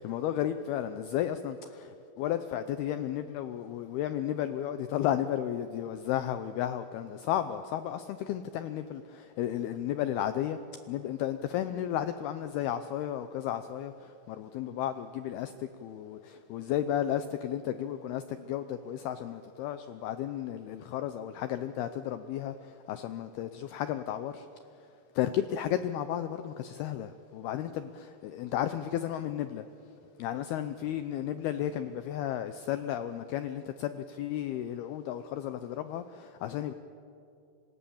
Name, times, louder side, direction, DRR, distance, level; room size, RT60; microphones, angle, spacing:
voice 1, 0.0-10.6 10.9-24.5 25.2-29.6 30.2-36.7, left 11 dB, 80° left, 10 dB, 2.3 m, -33 dB
30.0 x 26.0 x 7.2 m, 2.7 s
omnidirectional pair, 5.4 m